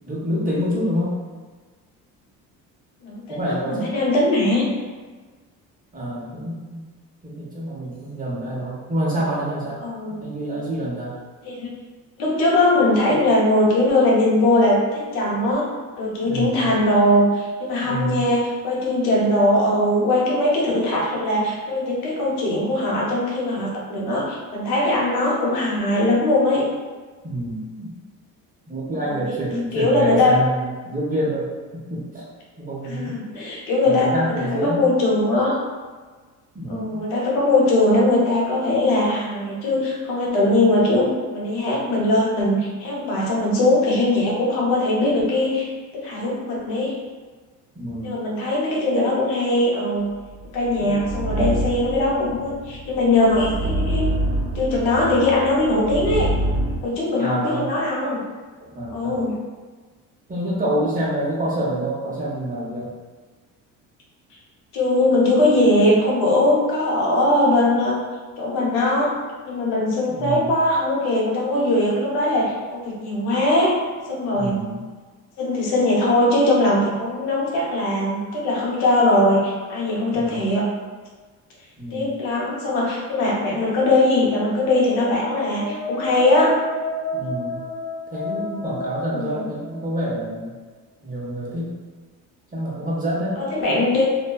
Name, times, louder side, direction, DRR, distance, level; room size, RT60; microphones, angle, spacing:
voice 1, 0.0-1.2 3.3-4.0 5.9-6.8 7.2-9.8 10.2-11.2 16.2-16.7 17.8-18.3 27.2-27.9 28.7-31.5 31.9-32.3 32.6-33.2 33.8-34.8 36.5-37.0 47.7-48.1 50.8-51.0 57.2-57.7 58.7-59.2 60.3-62.9 70.1-70.5 74.3-74.7 80.1-80.5 81.8-82.2 87.1-87.6 88.1-90.5 91.0-91.8 92.5-93.8, right 1 dB, 20° right, -6 dB, 0.9 m, -27 dB
voice 2, 3.0-4.7 9.8-10.3 11.4-11.7 12.2-15.7 16.0-26.6 29.1-29.2 29.7-30.4 32.8-35.6 36.7-46.9 48.0-50.1 50.5-54.1 54.5-56.3 56.8-58.2 58.9-59.4 64.7-68.0 68.4-69.1 69.4-73.8 74.1-74.6 75.4-80.7 81.9-86.6 89.1-89.4 93.4-94.0, left 1 dB, 80° left, -3 dB, 0.8 m, -20 dB
sound 1, 50.3-56.8, right 1 dB, 90° right, 0.6 m, -26 dB
sound 2, 84.6-90.4, left 2 dB, 50° left, 1.0 m, -31 dB
2.5 x 2.2 x 2.3 m, 1.4 s
supercardioid pair, 80°, 37 cm